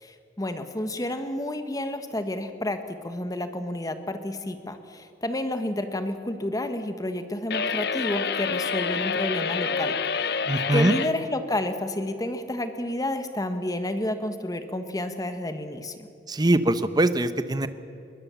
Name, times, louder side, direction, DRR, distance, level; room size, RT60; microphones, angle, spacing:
voice 1, 0.0-9.9 10.2-10.4 10.7-16.1, left 1 dB, 20° left, 8 dB, 1.4 m, -30 dB
sound 1, 7.5-11.1, left 5 dB, 65° left, 0.8 m, -27 dB
voice 2, 10.5-11.0 16.3-17.7, right 1 dB, 25° right, 12 dB, 0.8 m, -22 dB
22.0 x 19.5 x 7.1 m, 2.7 s
head